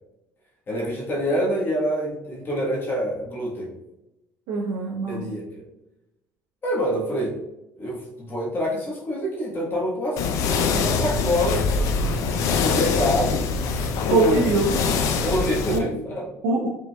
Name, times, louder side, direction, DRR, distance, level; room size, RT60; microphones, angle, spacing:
voice 1, 0.7-3.7 5.1-5.4 6.6-7.4 7.8-10.3 10.6-11.7 12.1-13.4 14.1-14.5 15.2-16.3, equal, 40° left, -4 dB, 1.3 m, -26 dB
voice 2, 4.5-5.2 14.1-14.8 15.7-15.8 16.4-16.7, right 3 dB, 85° right, -1 dB, 0.7 m, -22 dB
sound 1, 10.2-15.8, left 4 dB, 75° left, 0.5 m, -23 dB
5.2 x 3.8 x 2.3 m, 0.94 s
cardioid pair, 105°, 6 cm